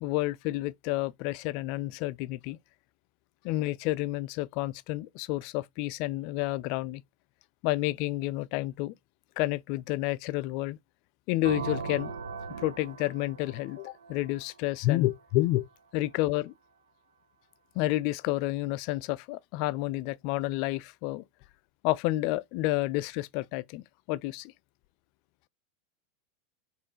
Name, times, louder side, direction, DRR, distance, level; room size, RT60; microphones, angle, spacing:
voice 1, 0.0-2.6 3.4-7.0 7.6-8.9 9.4-10.8 11.3-12.1 12.6-15.7 15.9-16.5 17.8-21.2 21.8-24.5, left 17 dB, 50° left, 0.3 m, -30 dB
sound 1, 11.4-15.2, right 5 dB, 75° right, 0.5 m, -39 dB
4.2 x 3.1 x 3.0 m
figure-of-eight pair, 85°, 0 cm